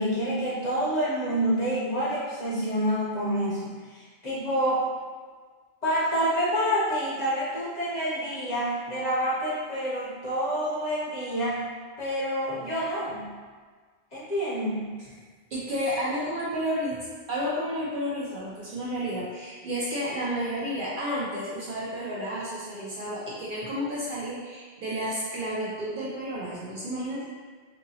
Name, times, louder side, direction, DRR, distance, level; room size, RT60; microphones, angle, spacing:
voice 1, 0.0-4.9 5.8-11.6 12.0-13.3 14.1-14.9, equal, 45° left, -9 dB, 0.7 m, -28 dB
voice 2, 15.5-27.2, equal, 60° right, -7 dB, 0.6 m, -31 dB
2.7 x 2.7 x 2.7 m, 1.5 s
omnidirectional pair, 1.2 m